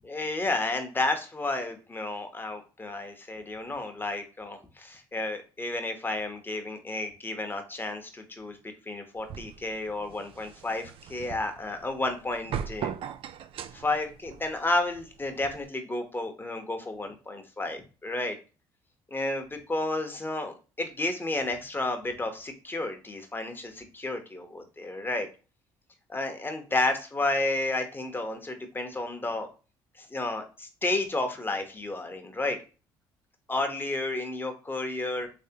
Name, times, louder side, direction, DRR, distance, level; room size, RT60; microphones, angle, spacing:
voice 1, 0.0-8.6 8.9-12.9 13.7-18.4 19.1-25.3 26.1-29.5 30.0-32.6 33.5-35.3, left 2 dB, 20° left, 6 dB, 0.9 m, -31 dB
sound 1, 9.2-15.7, right 8 dB, 55° right, 0.4 m, -40 dB
3.4 x 3.2 x 2.8 m, 0.33 s
supercardioid pair, 65°, 11 cm